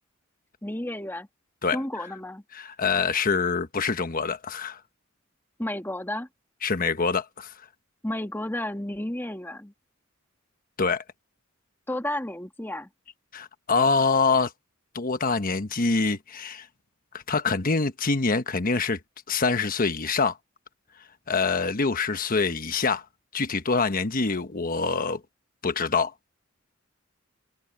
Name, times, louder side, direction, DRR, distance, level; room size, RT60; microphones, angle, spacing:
voice 1, 0.6-1.3 1.7-2.4 5.6-6.3 8.0-9.7 11.9-12.9, left 1 dB, 10° left, 2.0 m, -32 dB
voice 2, 2.5-4.8 6.6-7.5 10.8-11.0 13.3-14.5 14.9-16.7 17.1-19.0 19.3-20.4 21.3-23.0 23.3-25.2 25.6-26.1, left 4 dB, 45° left, 1.1 m, -25 dB
open air
head